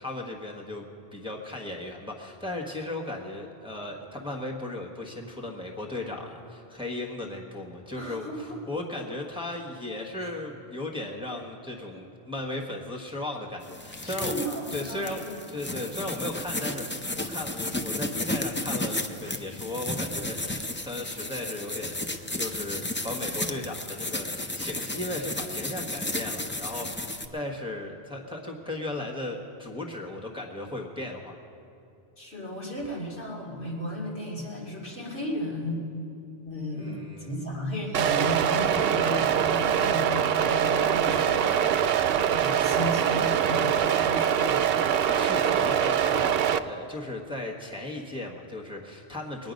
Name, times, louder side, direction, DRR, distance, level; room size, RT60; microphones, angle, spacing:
voice 1, 0.0-15.2 15.5-22.0 22.3-31.4 36.7-37.6 45.0-49.5, left 2 dB, 5° right, -1 dB, 1.3 m, -36 dB
voice 2, 7.9-8.6 10.2-10.3 11.9-12.0 14.1-15.4 15.7-15.8 26.0-26.1 32.2-35.8 36.4-41.7 42.1-44.6, left 1 dB, 85° left, -5 dB, 3.1 m, -34 dB
sound 1, 13.6-27.3, left 1 dB, 15° left, 0.4 m, -33 dB
sound 2, 37.9-46.6, right 9 dB, 70° right, 0.7 m, -24 dB
22.0 x 9.5 x 5.2 m, 2.7 s
omnidirectional pair, 1.1 m